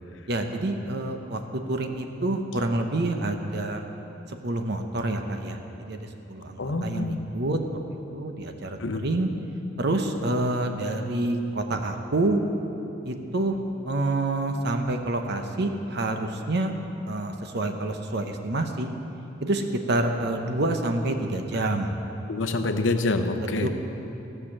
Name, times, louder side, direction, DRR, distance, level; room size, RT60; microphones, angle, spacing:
voice 1, 0.3-1.4 1.7-3.8 4.3-5.6 5.9-7.8 8.1-9.3 9.8-12.4 13.0-13.6 13.9-16.7 17.1-18.9 19.4-22.0 23.6-23.7, right 2 dB, 60° right, 5 dB, 0.9 m, -27 dB
voice 2, 6.6-7.2 8.8-9.0 22.3-23.7, left 2 dB, 70° left, 7 dB, 0.8 m, -26 dB
15.0 x 6.6 x 7.4 m, 2.9 s
head